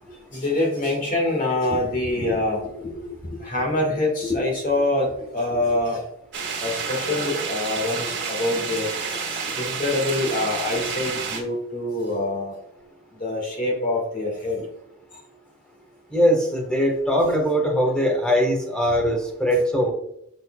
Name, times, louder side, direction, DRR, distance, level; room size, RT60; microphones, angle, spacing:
voice 1, 0.3-6.0 6.6-12.6 13.2-14.7 17.2-17.3, left 2 dB, 40° left, -1 dB, 1.9 m, -25 dB
sound 1, 6.3-11.4, right 5 dB, 50° right, 1.7 m, -29 dB
voice 2, 16.1-19.9, equal, 5° left, 0 dB, 1.4 m, -21 dB
6.7 x 6.6 x 2.4 m, 0.77 s
head